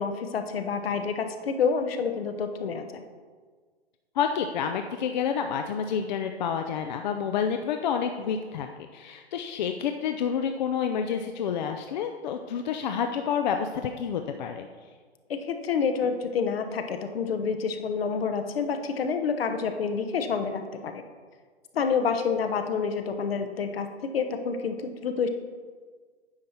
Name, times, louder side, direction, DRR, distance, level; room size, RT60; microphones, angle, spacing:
voice 1, 0.0-3.0 15.3-21.0 21.7-23.9 24.1-25.3, left 5 dB, 65° left, 7 dB, 1.0 m, -28 dB
voice 2, 4.2-14.7, left 7 dB, 45° left, 6 dB, 0.5 m, -29 dB
9.6 x 6.4 x 4.3 m, 1.5 s
hypercardioid pair, 130°, 32 cm